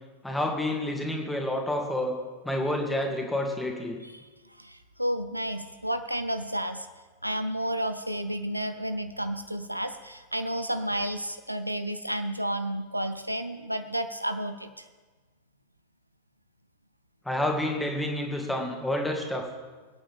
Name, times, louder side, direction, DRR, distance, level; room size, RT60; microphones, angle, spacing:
voice 1, 0.2-2.2 2.4-4.0 17.3-19.4, left 1 dB, 5° left, 1 dB, 2.3 m, -29 dB
voice 2, 4.6-6.9 7.2-14.8, right 1 dB, 90° right, 10 dB, 0.6 m, -31 dB
25.5 x 8.8 x 3.6 m, 1.3 s
figure-of-eight pair, 90°, 0 cm